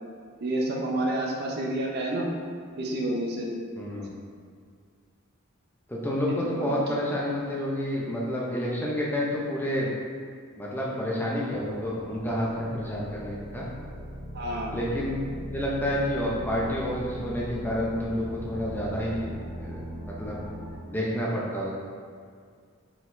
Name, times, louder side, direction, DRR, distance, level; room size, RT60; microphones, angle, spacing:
voice 1, 0.4-2.3 2.8-3.5 6.4-6.7 14.3-14.8, right 1 dB, 50° right, -1 dB, 0.5 m, -29 dB
voice 2, 3.8-4.1 5.9-9.9 10.6-13.7 14.7-15.2 15.5-19.8 20.1-20.4 20.9-21.7, equal, 10° left, -5 dB, 0.5 m, -29 dB
sound 1, 11.5-20.8, equal, 30° right, 1.0 m, -39 dB
4.6 x 3.9 x 2.6 m, 2.1 s
head